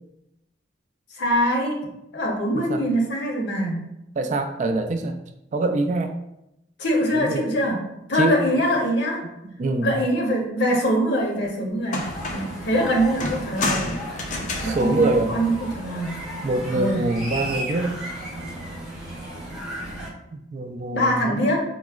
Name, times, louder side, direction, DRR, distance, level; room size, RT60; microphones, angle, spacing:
voice 1, 1.1-1.8 2.1-3.8 6.8-7.8 8.1-9.2 9.8-14.0 14.6-16.1 16.7-17.0 20.9-21.6, equal, 65° left, -1 dB, 0.7 m, -23 dB
voice 2, 4.2-5.2 5.5-6.1 7.1-7.5 8.1-8.6 9.6-9.9 14.6-15.4 16.4-17.9 20.3-21.5, right 2 dB, 40° right, 6 dB, 0.3 m, -25 dB
sound 1, 11.4-11.5 11.9-12.6 13.2-15.9 17.2-17.6, left 2 dB, 45° left, 0.4 m, -31 dB
sound 2, 12.0-20.1, right 1 dB, 5° right, 0.6 m, -34 dB
4.5 x 2.0 x 2.3 m, 0.85 s
head